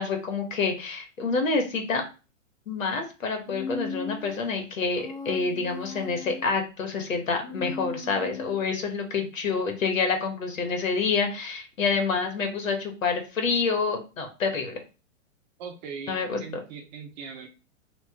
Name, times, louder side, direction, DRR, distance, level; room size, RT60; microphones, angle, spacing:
voice 1, 0.0-2.0 2.7-14.8 16.1-16.4, left 4 dB, 80° left, 4 dB, 1.2 m, -27 dB
Human voice, 3.5-4.4 4.9-6.5 7.4-8.6, left 4 dB, 35° left, 0.8 m, -37 dB
voice 2, 15.6-17.5, right 5 dB, 35° right, 3 dB, 0.6 m, -40 dB
3.0 x 2.4 x 3.5 m, 0.32 s
hypercardioid pair, 125°, 39 cm